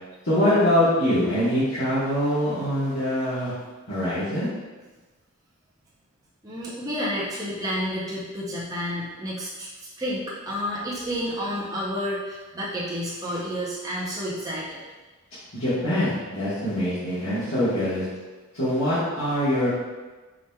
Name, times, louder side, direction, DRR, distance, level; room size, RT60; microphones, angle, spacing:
voice 1, 0.2-3.5 3.9-4.5 15.5-18.0 18.5-19.7, left 1 dB, 70° left, -13 dB, 1.2 m, -23 dB
voice 2, 6.4-14.8, equal, 15° right, -7 dB, 0.6 m, -30 dB
4.9 x 3.0 x 2.2 m, 1.2 s
head